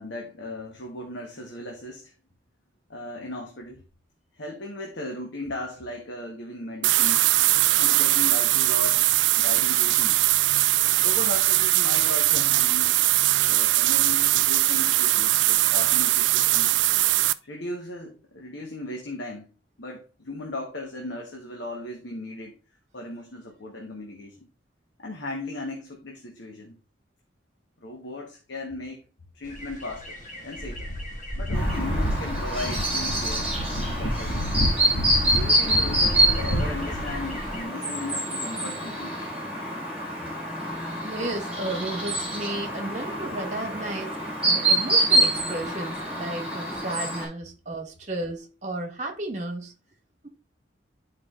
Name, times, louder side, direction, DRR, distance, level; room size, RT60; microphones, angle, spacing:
voice 1, 0.0-2.1 2.9-3.8 4.4-7.3 7.8-9.1 9.3-10.2 11.0-13.1 13.4-16.7 17.4-19.5 19.8-22.5 22.9-24.5 25.0-26.8 27.8-29.0 29.3-30.2 30.4-30.9 31.3-33.5 33.8-34.3 35.2-39.2, left 1 dB, 75° left, 1.1 m, -37 dB
sound 1, 6.8-17.3, right 16 dB, 75° right, 0.3 m, -21 dB
sound 2, 29.5-37.6, equal, 40° left, 1.7 m, -29 dB
Chirp tweet, 31.5-47.2, right 1 dB, 5° right, 3.8 m, -26 dB
voice 2, 41.0-44.2 44.4-49.7 50.2-50.3, right 2 dB, 40° right, 1.4 m, -33 dB
11.5 x 4.7 x 2.4 m
head